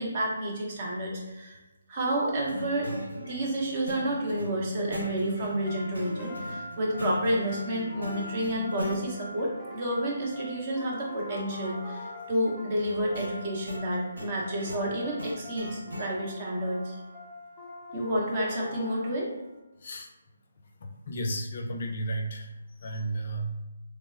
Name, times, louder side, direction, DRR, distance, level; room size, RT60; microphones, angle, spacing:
voice 1, 0.0-1.6 1.9-2.9 3.2-17.0 17.9-19.3, right 1 dB, 35° right, -2 dB, 0.7 m, -30 dB
sound 1, 2.5-9.0 12.8-16.1, left 1 dB, 90° right, 0.7 m, -39 dB
sound 2, 5.7-19.5, left 1 dB, 10° left, 0.6 m, -43 dB
voice 2, 20.8-22.5 22.8-23.5, right 1 dB, 55° left, 3 dB, 0.4 m, -33 dB
3.1 x 2.0 x 2.3 m, 1.1 s
figure-of-eight pair, 150°, 0 cm